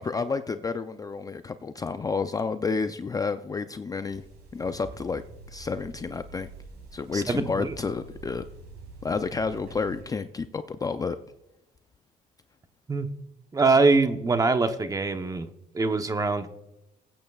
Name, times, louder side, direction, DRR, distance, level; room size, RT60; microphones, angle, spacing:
voice 1, 0.0-4.2 4.5-5.2 5.5-6.5 6.9-8.4 9.0-11.2, left 4 dB, 20° left, 10 dB, 0.4 m, -30 dB
sound 1, 4.1-10.0, right 3 dB, 85° right, 4.8 m, -46 dB
voice 2, 7.1-7.8 12.9-13.1 13.5-15.5 15.7-16.5, right 3 dB, 20° right, 8 dB, 0.9 m, -23 dB
20.5 x 8.9 x 2.4 m, 0.93 s
cardioid pair, 110°, 17 cm